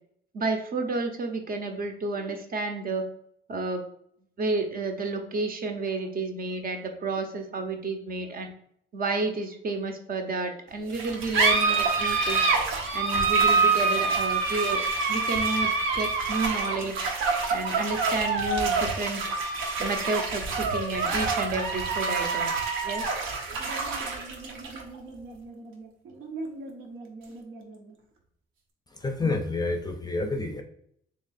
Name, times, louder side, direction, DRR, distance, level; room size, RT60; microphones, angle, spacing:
voice 1, 0.3-3.1 3.5-3.8 4.4-8.5 8.9-12.5 12.9-14.8 15.1-17.1 17.5-19.2 19.8-22.6 22.8-23.1 23.5-23.6 24.2-24.3, right 3 dB, 45° right, 4 dB, 0.8 m, -31 dB
sound 1, 10.9-27.9, right 4 dB, 80° right, 0.8 m, -27 dB
voice 2, 29.0-30.6, left 3 dB, 20° left, 5 dB, 0.5 m, -28 dB
3.2 x 2.9 x 4.1 m, 0.68 s
cardioid pair, 90°, 20 cm